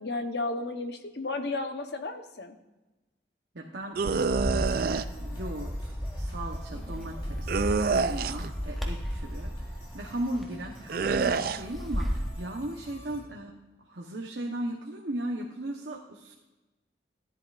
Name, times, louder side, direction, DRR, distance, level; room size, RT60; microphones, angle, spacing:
voice 1, 0.0-2.5, left 2 dB, 65° left, 7 dB, 1.0 m, -33 dB
voice 2, 3.5-13.5 13.9-16.3, right 1 dB, 70° right, 0 dB, 1.0 m, -37 dB
sound 1, 3.9-13.2, equal, 30° left, 2.7 m, -49 dB
sound 2, 3.9-5.0 7.5-8.5 10.9-11.6, right 5 dB, 50° right, 0.4 m, -27 dB
Bird, 4.3-12.3, equal, ahead, 1.0 m, -34 dB
15.5 x 10.5 x 2.5 m, 1.1 s
head